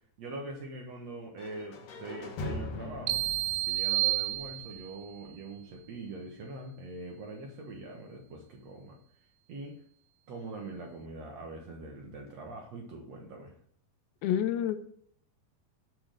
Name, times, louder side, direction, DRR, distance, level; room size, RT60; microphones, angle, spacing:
voice 1, 0.2-3.2 3.6-9.0 9.5-9.8 10.3-13.6, right 2 dB, 60° right, 1.9 m, -43 dB
sound 1, 1.4-5.3, left 2 dB, 60° left, 3.3 m, -41 dB
sound 2, 3.1-5.0, right 20 dB, 80° right, 2.3 m, -30 dB
voice 2, 14.2-14.8, left 10 dB, 85° left, 2.6 m, -28 dB
8.8 x 5.7 x 7.8 m
omnidirectional pair, 4.4 m